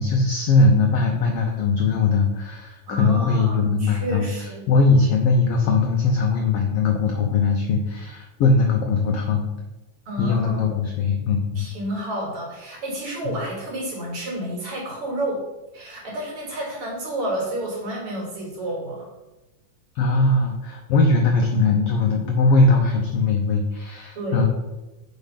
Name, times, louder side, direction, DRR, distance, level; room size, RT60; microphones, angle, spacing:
voice 1, 0.0-9.5 10.2-11.7 13.2-13.3 19.9-24.5, left 3 dB, 85° left, 2 dB, 1.3 m, -20 dB
voice 2, 2.9-4.6 10.0-10.8 11.5-15.5 15.7-19.1 24.1-24.5, right 1 dB, 45° right, -3 dB, 3.4 m, -30 dB
7.1 x 5.5 x 5.7 m, 1.1 s
omnidirectional pair, 3.7 m